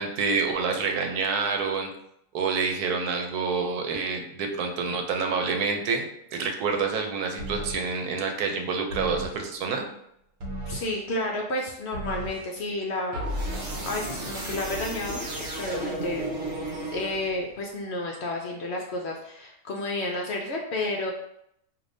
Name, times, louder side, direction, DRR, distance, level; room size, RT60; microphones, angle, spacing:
voice 1, 0.0-1.9 2.3-9.8, right 5 dB, 90° right, 4 dB, 1.2 m, -27 dB
sound 1, 7.4-7.9 8.9-9.5 10.4-11.0 11.9-12.5 13.1-17.5, right 1 dB, 65° right, 1.1 m, -34 dB
voice 2, 10.7-13.2 13.8-16.3 16.9-21.1, left 2 dB, 65° left, 0 dB, 0.7 m, -31 dB
5.0 x 2.8 x 2.6 m, 0.75 s
omnidirectional pair, 1.6 m